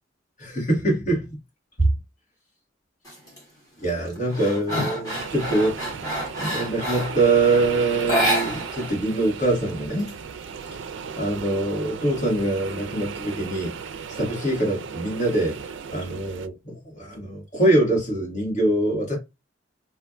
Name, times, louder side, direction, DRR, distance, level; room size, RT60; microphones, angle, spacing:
voice 1, 0.4-1.3 1.8-1.9 3.8-6.0 6.3-10.1 11.2-13.7 14.1-15.6 15.9-19.2, right 2 dB, 40° left, 1.7 m, -24 dB
sound 1, 3.0-3.4 3.8-7.3 8.0-9.0 9.2-9.3 9.7-10.6, equal, 20° left, 1.6 m, -28 dB
sound 2, 5.1-16.5, right 6 dB, 70° right, 0.4 m, -36 dB
3.3 x 2.5 x 2.5 m
head